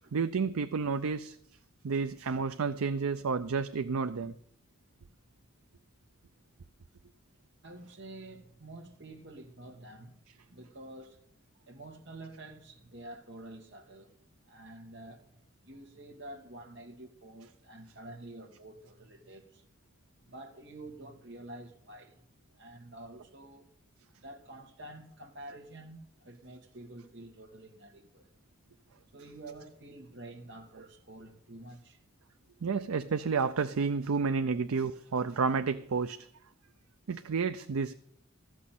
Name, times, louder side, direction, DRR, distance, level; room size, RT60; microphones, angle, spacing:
voice 1, 0.1-1.4 1.8-4.3 32.6-36.2 37.1-37.9, right 5 dB, 85° right, 0.5 m, -30 dB
voice 2, 7.6-10.2 10.5-11.2 11.7-14.1 14.4-19.6 20.3-22.2 22.6-23.7 24.2-28.3 29.1-32.0 34.5-34.6, right 1 dB, 55° right, 1.7 m, -48 dB
14.0 x 6.3 x 9.1 m
head